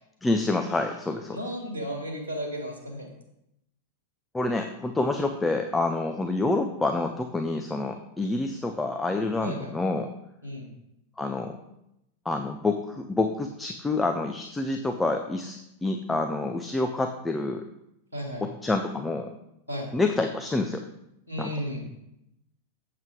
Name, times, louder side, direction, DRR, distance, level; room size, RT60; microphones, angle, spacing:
voice 1, 0.2-1.4 4.3-10.1 11.2-11.6 12.2-17.6 18.4-19.3 19.9-20.8 21.4-21.5, left 2 dB, 10° left, 5 dB, 0.6 m, -27 dB
voice 2, 1.3-3.1 9.4-9.7 10.4-10.7 18.1-18.5 19.7-20.0 21.3-21.8, equal, 90° left, 0 dB, 2.6 m, -34 dB
7.8 x 7.4 x 4.8 m, 0.83 s
figure-of-eight pair, 90°, 0 cm